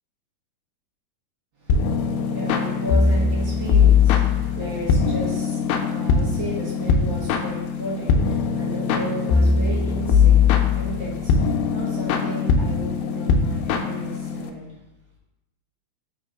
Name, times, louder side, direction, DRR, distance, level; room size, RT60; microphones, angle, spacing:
voice 1, 1.6-14.7, right 1 dB, 65° right, -7 dB, 1.2 m, -34 dB
sound 1, 1.7-14.5, left 5 dB, 80° left, 2.3 m, -21 dB
5.3 x 3.9 x 4.6 m, 0.95 s
omnidirectional pair, 4.4 m